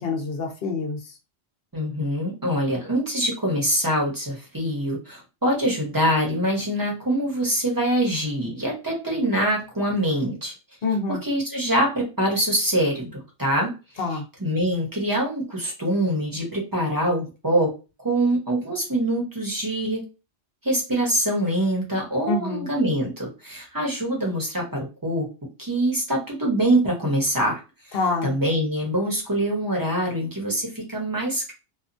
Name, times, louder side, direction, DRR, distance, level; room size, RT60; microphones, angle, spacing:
voice 1, 0.0-1.1 10.8-11.2 14.0-14.2 22.3-22.7 27.9-28.3, left 3 dB, 60° left, 2 dB, 0.9 m, -26 dB
voice 2, 1.7-10.5 11.1-13.7 14.4-17.7 18.0-20.1 20.6-25.3 25.6-27.6 28.2-31.5, right 1 dB, 20° right, -1 dB, 0.8 m, -24 dB
2.8 x 2.3 x 2.5 m, 0.30 s
omnidirectional pair, 1.1 m